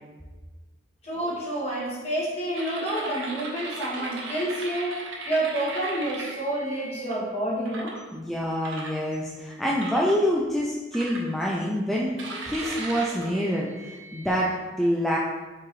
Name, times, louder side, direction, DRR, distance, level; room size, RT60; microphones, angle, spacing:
voice 1, 1.0-5.0 5.3-8.0, right 1 dB, 35° left, -6 dB, 1.5 m, -29 dB
sound 1, 2.5-7.1 7.7-8.0 8.6-9.4 9.8-10.2 10.9-11.6 12.2-14.5, right 3 dB, 75° right, 0.7 m, -38 dB
voice 2, 8.1-12.2 12.4-15.2, equal, ahead, -4 dB, 0.3 m, -26 dB
4.7 x 3.6 x 3.1 m, 1.2 s
head